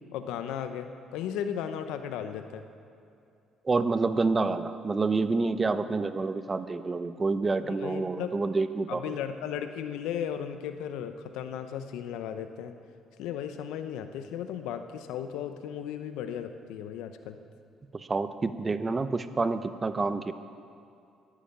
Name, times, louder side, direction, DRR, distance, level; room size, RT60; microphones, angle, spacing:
voice 1, 0.1-2.6 7.6-8.3 8.9-12.7 13.2-17.4, left 9 dB, 85° left, 8 dB, 0.7 m, -35 dB
voice 2, 3.6-9.2 17.9-20.3, right 3 dB, 30° right, 11 dB, 0.8 m, -28 dB
11.5 x 10.0 x 8.8 m, 2.6 s
supercardioid pair, 75°, 0 cm